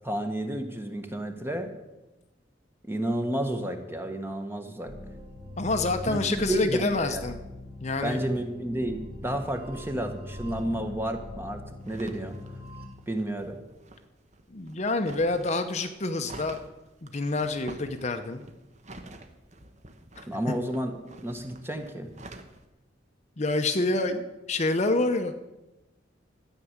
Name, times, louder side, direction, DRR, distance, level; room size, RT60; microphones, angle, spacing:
voice 1, 0.0-1.7 2.8-4.9 6.0-7.3 8.0-12.4 13.1-13.6 20.3-22.1, right 1 dB, 10° right, 5 dB, 1.3 m, -31 dB
sound 1, 4.9-12.9, left 1 dB, 55° right, 3.0 m, -41 dB
voice 2, 5.6-7.4 7.8-8.2 14.5-16.6 17.0-18.4 23.4-25.3, left 2 dB, 40° left, 7 dB, 0.8 m, -27 dB
sound 2, 11.8-22.7, right 2 dB, 40° right, 1.1 m, -49 dB
13.5 x 9.1 x 7.3 m, 1.0 s
head